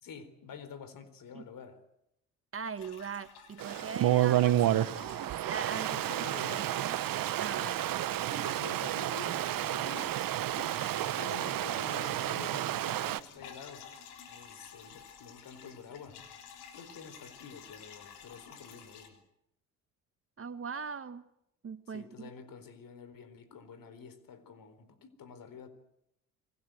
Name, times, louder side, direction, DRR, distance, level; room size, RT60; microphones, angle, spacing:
voice 1, 0.0-1.8 5.9-6.7 7.5-7.8 8.4-10.1 11.0-13.9 14.3-16.2 16.7-19.2 21.9-25.7, left 6 dB, 60° left, 13 dB, 4.2 m, -48 dB
voice 2, 2.5-6.0 6.5-7.0 7.4-7.9 8.2-8.6 20.4-21.2 21.6-22.3, right 5 dB, 35° right, 12 dB, 1.5 m, -41 dB
sound 1, 2.8-19.1, left 7 dB, 75° left, 3.7 m, -52 dB
Stream, 3.6-13.2, right 13 dB, 60° right, 1.3 m, -30 dB
29.5 x 21.0 x 7.9 m, 0.81 s
hypercardioid pair, 55°, 39 cm